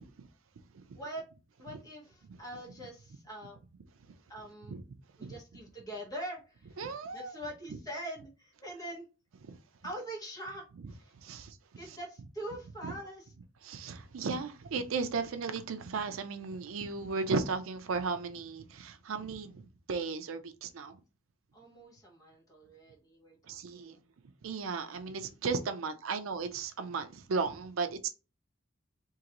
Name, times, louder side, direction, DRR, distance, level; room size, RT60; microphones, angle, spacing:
voice 1, 1.6-3.6 4.3-4.8 5.2-6.8 7.1-9.1 9.8-10.6 10.9-11.1 11.8-13.3 21.5-24.1, right 1 dB, 20° left, 1.3 m, -43 dB
voice 2, 6.8-7.3 9.5-9.6 11.2-11.6 12.8-12.9 13.6-19.6 19.9-21.0 23.5-24.0 24.4-28.1, right 4 dB, 90° right, 0.5 m, -35 dB
3.7 x 2.9 x 2.9 m
head